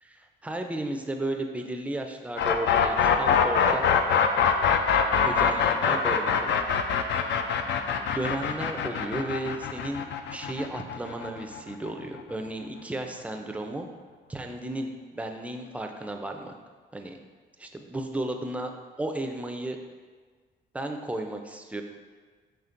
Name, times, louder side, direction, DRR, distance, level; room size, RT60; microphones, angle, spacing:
voice 1, 0.0-3.8 5.2-6.6 6.9-7.2 8.1-13.9 14.3-16.5 16.9-17.2 17.6-18.7 19.0-19.8 20.7-21.8, right 1 dB, 5° right, 3 dB, 0.4 m, -34 dB
sound 1, 2.4-12.2, left 7 dB, 65° left, 0.4 m, -24 dB
5.8 x 3.1 x 2.5 m, 1.5 s
cardioid pair, 90°, 20 cm